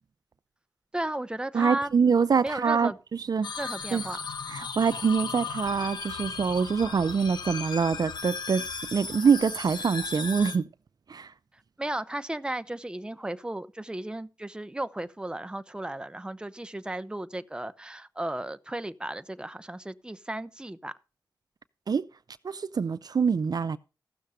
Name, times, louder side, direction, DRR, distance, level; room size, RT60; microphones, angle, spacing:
voice 1, 0.9-2.2 2.4-3.0 3.6-4.2 11.8-20.9, right 1 dB, 10° right, 0.7 m, -34 dB
voice 2, 1.5-3.5 3.9-4.0 4.5-10.7 11.1-11.3 21.9-22.0 22.4-23.8, right 5 dB, 60° right, 0.5 m, -25 dB
sound 1, 3.4-10.6, left 5 dB, 80° left, 1.1 m, -36 dB
15.0 x 6.6 x 4.9 m
cardioid pair, 50°, 7 cm